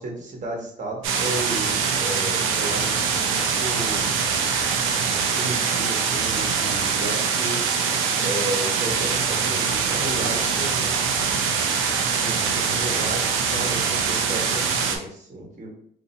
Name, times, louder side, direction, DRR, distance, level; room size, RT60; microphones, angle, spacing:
voice 1, 0.0-4.1 5.3-7.6 8.2-11.0 12.1-15.7, right 1 dB, 40° right, 0 dB, 1.2 m, -33 dB
sound 1, 1.0-15.0, right 6 dB, 90° right, 0.5 m, -23 dB
2.6 x 2.6 x 4.1 m, 0.64 s
cardioid pair, 90°, 20 cm